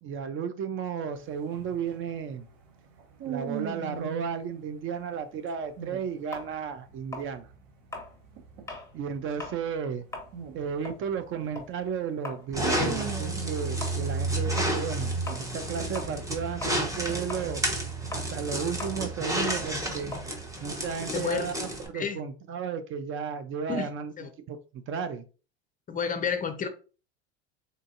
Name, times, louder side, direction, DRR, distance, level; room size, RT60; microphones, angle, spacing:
voice 1, 0.0-2.5 3.3-7.5 8.9-10.1 10.5-17.6 18.1-20.2 20.6-24.1 24.4-25.2, right 6 dB, 40° right, 0.5 m, -34 dB
sound 1, 1.1-4.4 5.5-6.5 6.8-11.9 12.3-15.4, right 7 dB, 65° right, 1.1 m, -41 dB
sound 2, 6.3-8.9 9.3-9.6 10.0-16.4 16.6-21.4, left 2 dB, 10° left, 1.3 m, -42 dB
sound 3, 12.5-21.9, right 1 dB, 10° right, 0.9 m, -31 dB
voice 2, 21.1-21.5 21.9-22.2 23.7-23.9 24.2-24.3 25.9-26.7, left 6 dB, 25° left, 0.6 m, -30 dB
3.9 x 2.5 x 2.5 m
hypercardioid pair, 90°, 32 cm